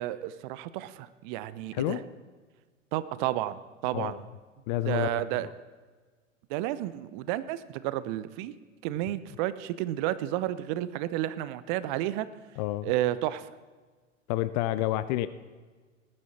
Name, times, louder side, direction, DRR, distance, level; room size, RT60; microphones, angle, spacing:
voice 1, 0.0-2.0 2.9-4.2 4.8-5.5 6.5-8.5 8.8-12.3 12.8-13.5, right 14 dB, 35° right, 15 dB, 0.7 m, -31 dB
voice 2, 1.7-2.1 3.9-4.2 4.7-5.5 12.6-12.9 14.3-15.3, left 15 dB, 35° left, 14 dB, 0.5 m, -29 dB
19.0 x 11.0 x 4.2 m, 1.4 s
figure-of-eight pair, 95°, 40 cm